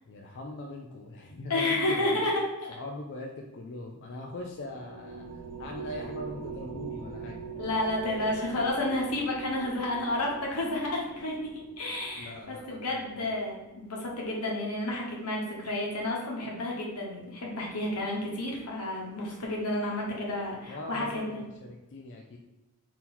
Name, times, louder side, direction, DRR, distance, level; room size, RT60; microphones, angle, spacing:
voice 1, 0.1-2.2 2.7-7.4 12.1-13.2 20.6-22.4, left 1 dB, 55° left, 1 dB, 0.4 m, -41 dB
voice 2, 1.5-2.8 7.6-11.5 11.8-21.4, left 1 dB, 85° left, -2 dB, 1.1 m, -31 dB
sound 1, 4.3-14.0, right 5 dB, 85° right, 0.8 m, -44 dB
3.8 x 2.8 x 4.3 m, 1.0 s
head